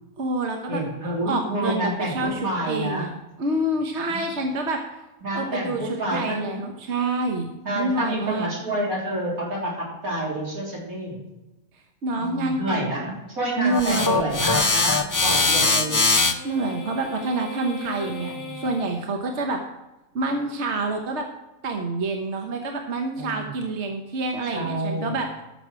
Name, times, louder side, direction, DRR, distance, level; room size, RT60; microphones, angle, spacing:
voice 1, 0.2-3.1 3.4-4.8 5.3-7.5 7.7-8.5 12.0-13.0 13.6-14.4 16.4-19.6 20.1-21.2 21.6-25.4, right 2 dB, 55° right, 3 dB, 1.3 m, -27 dB
voice 2, 0.7-3.1 4.1-4.2 5.2-6.6 7.7-11.2 12.2-16.0 18.3-18.6 23.2-23.6 24.5-25.1, right 1 dB, 80° right, -3 dB, 3.7 m, -29 dB
sound 1, 13.7-18.9, left 3 dB, 25° left, 0.4 m, -23 dB
13.5 x 6.3 x 6.1 m, 0.99 s
omnidirectional pair, 1.5 m